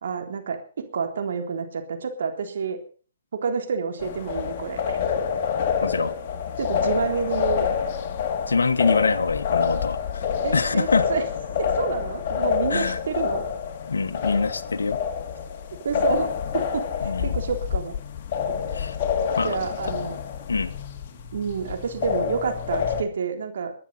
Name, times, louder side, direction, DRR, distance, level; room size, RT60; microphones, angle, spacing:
voice 1, 0.0-2.8 3.3-4.8 6.6-7.7 10.4-11.2 11.6-13.4 15.8-16.9 17.2-18.0 19.4-20.2 21.3-23.7, right 5 dB, 70° right, 5 dB, 3.7 m, -28 dB
sound 1, 4.0-23.0, left 7 dB, 45° left, 2.7 m, -27 dB
voice 2, 5.8-6.1 8.5-10.3 10.5-11.1 12.7-13.0 13.9-15.0 17.0-17.4 18.7-19.0 19.4-19.6 20.5-20.7, left 4 dB, 85° left, 7 dB, 1.3 m, -24 dB
20.5 x 10.0 x 5.7 m, 0.41 s
hypercardioid pair, 135°, 0 cm